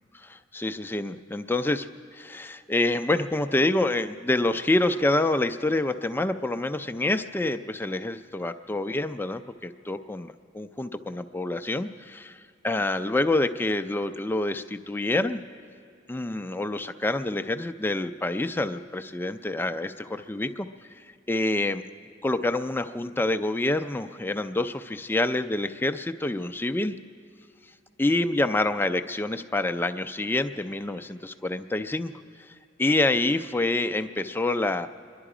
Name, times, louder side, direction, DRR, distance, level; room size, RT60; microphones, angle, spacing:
voice 1, 0.1-12.4 12.6-15.4 16.1-20.7 21.3-21.8 22.2-27.0 28.0-32.1 32.5-32.6 32.8-34.9, left 2 dB, 10° left, 9 dB, 0.4 m, -27 dB
25.5 x 11.0 x 4.9 m, 2.4 s
head